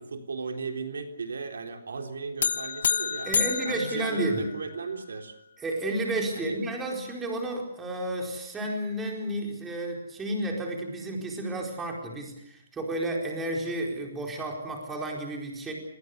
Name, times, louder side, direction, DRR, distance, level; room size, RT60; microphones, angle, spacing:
voice 1, 0.0-3.3 3.7-5.4 6.4-6.6, right 4 dB, 90° right, 4 dB, 3.7 m, -36 dB
sound 1, 2.4-4.9, left 6 dB, 65° left, 1.0 m, -29 dB
voice 2, 3.2-4.5 5.6-15.7, right 1 dB, 10° right, 1 dB, 4.5 m, -31 dB
28.0 x 21.0 x 6.8 m, 0.76 s
hypercardioid pair, 165°, 0 cm